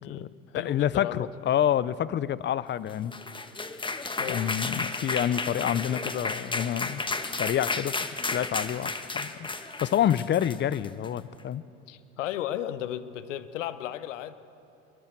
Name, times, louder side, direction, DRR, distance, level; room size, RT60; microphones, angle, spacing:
voice 1, 0.0-1.3 4.2-4.4 11.9-14.4, left 12 dB, 80° left, 13 dB, 1.1 m, -35 dB
voice 2, 0.6-3.1 4.3-7.0 7.3-7.9 8.3-9.5 9.8-11.6, left 10 dB, 30° left, 19 dB, 0.6 m, -28 dB
sound 1, 2.9-11.2, left 3 dB, 15° left, 1.3 m, -33 dB
26.0 x 22.0 x 4.6 m, 2.7 s
hypercardioid pair, 80°, 37 cm